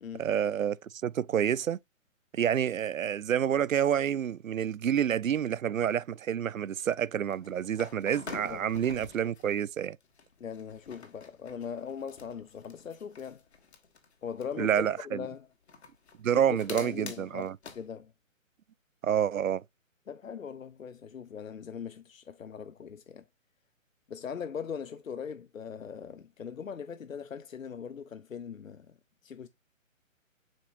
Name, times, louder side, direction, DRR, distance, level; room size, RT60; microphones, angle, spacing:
voice 1, 0.2-1.8 2.3-10.0 14.6-15.3 16.2-17.6 19.0-19.6, right 9 dB, 80° right, 0.5 m, -28 dB
sound 1, 7.3-9.7 10.0-14.6 15.7-17.8, left 5 dB, 55° left, 1.6 m, -48 dB
voice 2, 10.4-13.4 14.2-15.5 16.3-18.1 20.1-23.2 24.1-28.9 29.2-29.5, left 7 dB, 75° left, 0.7 m, -40 dB
7.3 x 5.2 x 2.5 m
figure-of-eight pair, 140°, 40 cm